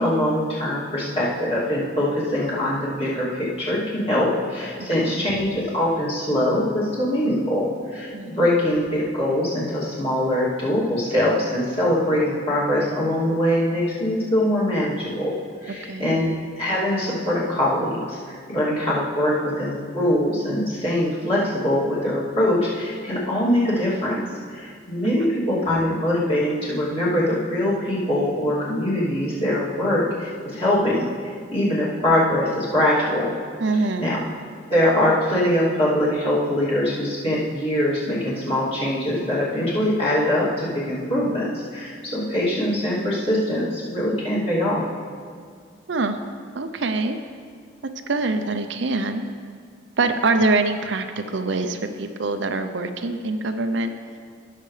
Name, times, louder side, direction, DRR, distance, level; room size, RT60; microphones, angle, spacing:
voice 1, 0.0-16.3 16.6-24.2 24.5-33.3 34.0-34.2 34.7-44.8, left 1 dB, 30° left, -8 dB, 2.5 m, -23 dB
voice 2, 4.1-4.5 5.0-5.3 8.1-8.3 15.7-16.1 25.0-25.3 33.6-34.1 45.9-46.2 46.5-47.2 48.1-49.2 50.0-53.9, right 3 dB, 65° right, 7 dB, 0.6 m, -24 dB
17.0 x 6.7 x 3.3 m, 2.1 s
head